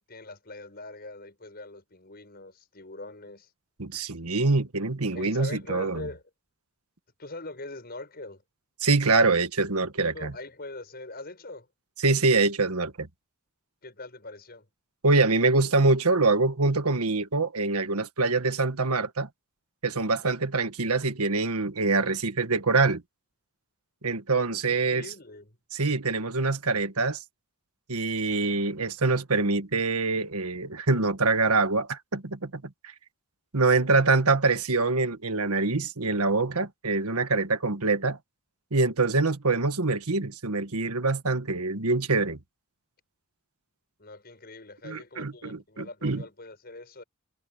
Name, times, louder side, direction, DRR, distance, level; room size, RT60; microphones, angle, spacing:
voice 1, 0.1-3.5 5.1-6.2 7.2-8.4 10.0-11.7 13.8-14.7 24.7-25.6 44.0-47.0, left 2 dB, 45° left, 7.0 m, -42 dB
voice 2, 3.8-6.1 8.8-10.3 12.0-13.1 15.0-19.3 19.8-23.0 24.0-25.1 25.7-27.2 27.9-32.9 33.5-38.2 38.7-42.4 44.8-46.2, right 3 dB, 90° right, 1.6 m, -25 dB
head